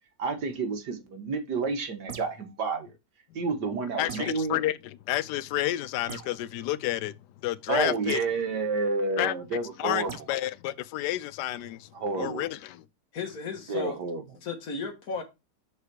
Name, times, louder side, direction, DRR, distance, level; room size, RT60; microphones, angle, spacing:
voice 1, 0.2-2.9 3.3-4.6 7.7-10.1 11.9-12.5 13.7-14.2, right 4 dB, 80° right, 2.1 m, -30 dB
sound 1, 2.1-2.5 4.1-4.5 6.1-6.4 8.1-8.3 10.1-10.3, right 8 dB, 50° right, 0.9 m, -41 dB
voice 2, 4.0-7.1 7.4-8.2 9.2-9.3 9.8-11.9 12.2-12.8, left 14 dB, 85° left, 1.2 m, -30 dB
voice 3, 13.1-14.0 14.4-15.2, left 4 dB, 65° left, 1.9 m, -34 dB
6.6 x 5.0 x 4.7 m
omnidirectional pair, 1.8 m